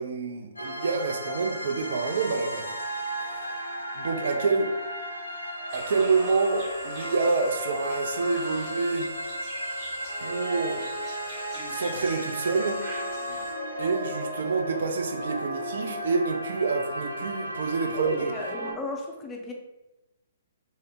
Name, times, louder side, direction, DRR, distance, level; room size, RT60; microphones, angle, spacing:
voice 1, 0.0-2.8 3.2-3.6 3.9-4.7 5.7-9.1 10.2-10.9 11.7-12.8 13.8-18.3, right 4 dB, 60° right, 5 dB, 0.3 m, -27 dB
sound 1, 0.6-18.7, equal, 85° left, 0.4 m, -34 dB
sound 2, 5.7-13.5, right 1 dB, 35° right, 0.8 m, -44 dB
voice 2, 17.9-19.5, left 2 dB, 15° left, 1 dB, 0.4 m, -35 dB
2.7 x 2.0 x 2.6 m, 0.96 s
figure-of-eight pair, 120°, 0 cm